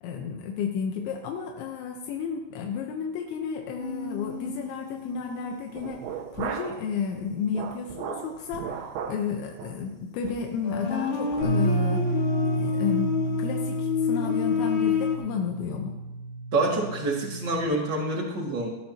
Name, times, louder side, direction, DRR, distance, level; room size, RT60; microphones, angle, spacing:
voice 1, 0.0-6.1 6.3-12.1 12.5-16.0, left 6 dB, 85° left, 3 dB, 3.3 m, -32 dB
sound 1, 3.8-6.3 6.7-7.0 9.6-9.7 10.3-15.2, left 7 dB, 65° left, 1.2 m, -29 dB
sound 2, 5.7-6.9 7.2-9.3 9.6-9.8 10.2-10.5 10.9-11.0 11.3-11.5, right 7 dB, 80° right, 3.2 m, -36 dB
Bass guitar, 11.4-17.6, right 2 dB, 20° left, 2.8 m, -30 dB
voice 2, 16.5-18.7, right 2 dB, 45° right, -1 dB, 1.5 m, -27 dB
18.0 x 13.0 x 2.9 m, 1.0 s
omnidirectional pair, 5.3 m